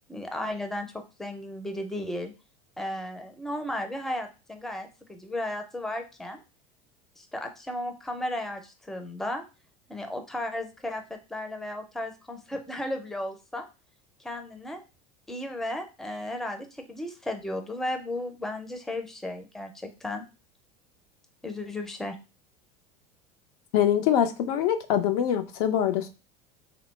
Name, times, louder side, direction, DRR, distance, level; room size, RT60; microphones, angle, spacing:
voice 1, 0.1-2.3 2.8-6.4 7.2-9.4 9.9-13.6 14.2-14.8 15.3-20.2 21.4-22.2, left 1 dB, ahead, 5 dB, 0.4 m, -34 dB
voice 2, 23.7-26.1, left 10 dB, 75° left, 7 dB, 0.5 m, -24 dB
2.7 x 2.0 x 3.1 m, 0.30 s
hypercardioid pair, 100°, 19 cm